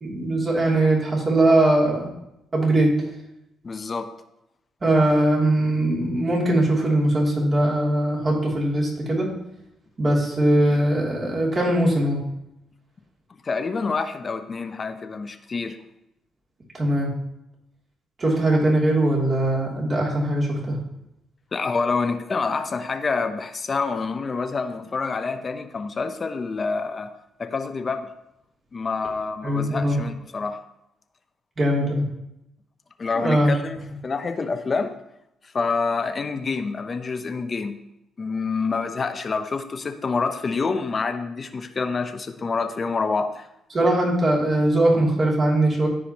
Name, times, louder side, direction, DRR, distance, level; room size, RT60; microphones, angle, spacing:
voice 1, 0.0-2.1 2.5-2.9 4.8-9.3 10.0-12.2 16.7-17.1 18.2-20.8 29.4-30.0 31.6-32.0 33.1-33.5 43.7-45.9, right 1 dB, 35° right, -3 dB, 2.9 m, -20 dB
voice 2, 3.6-4.1 13.4-15.8 21.5-27.1 27.4-28.1 28.7-30.6 33.0-34.9 35.4-37.8 38.2-43.5, left 4 dB, 35° left, 8 dB, 0.7 m, -27 dB
14.5 x 5.0 x 3.0 m, 0.84 s
cardioid pair, 90°, 0 cm